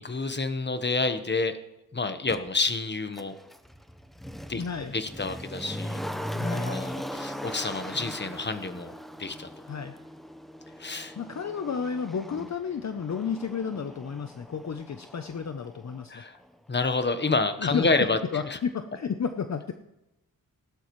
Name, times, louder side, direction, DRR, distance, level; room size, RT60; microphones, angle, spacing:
voice 1, 0.0-1.6 1.9-3.3 4.5-4.6 4.9-6.0 6.7-9.5 10.8-11.2 16.1-16.4 16.7-18.2 18.4-18.6, left 3 dB, 30° left, 9 dB, 1.2 m, -28 dB
Motor vehicle (road), 2.3-2.4 3.1-16.1 16.3-16.4, equal, ahead, 0.9 m, -39 dB
voice 2, 4.6-5.0 6.3-6.8 9.7-9.9 10.9-16.3 17.6-17.9 18.3-19.7, left 6 dB, 50° left, 8 dB, 0.7 m, -32 dB
17.5 x 12.0 x 3.2 m, 0.92 s
wide cardioid pair, 80°, 34 cm